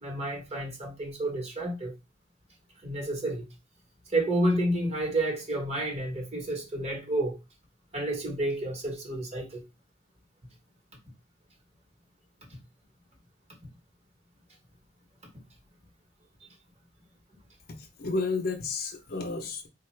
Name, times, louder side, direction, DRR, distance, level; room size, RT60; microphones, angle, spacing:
voice 1, 0.0-1.9 2.8-3.4 4.1-7.4 7.9-9.6 16.4-16.5, right 1 dB, 35° right, 1.1 m, -30 dB
voice 2, 17.7-19.7, left 3 dB, 55° left, 0.6 m, -32 dB
3.9 x 2.2 x 3.1 m
head